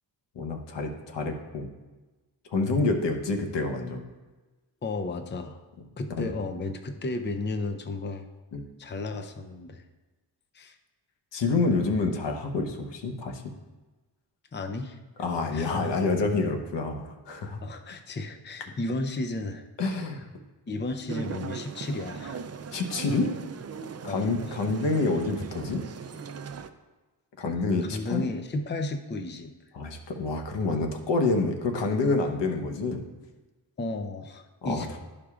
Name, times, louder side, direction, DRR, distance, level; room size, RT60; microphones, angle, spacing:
voice 1, 0.3-1.7 2.5-4.0 6.2-6.3 8.5-8.6 11.3-13.4 15.2-17.6 19.8-20.3 22.7-23.3 24.0-25.8 27.4-28.3 29.7-33.0 34.6-35.0, left 3 dB, 80° left, 4 dB, 1.1 m, -27 dB
voice 2, 4.8-5.6 6.0-8.3 8.8-9.8 10.5-10.8 14.5-15.0 15.5-15.7 17.6-19.6 20.7-22.4 24.0-24.6 27.9-29.5 33.8-35.0, left 2 dB, 25° left, 6 dB, 0.6 m, -33 dB
sound 1, 21.1-26.7, right 6 dB, 35° right, 0.5 m, -39 dB
12.5 x 5.0 x 2.4 m, 1.2 s
cardioid pair, 70°, 42 cm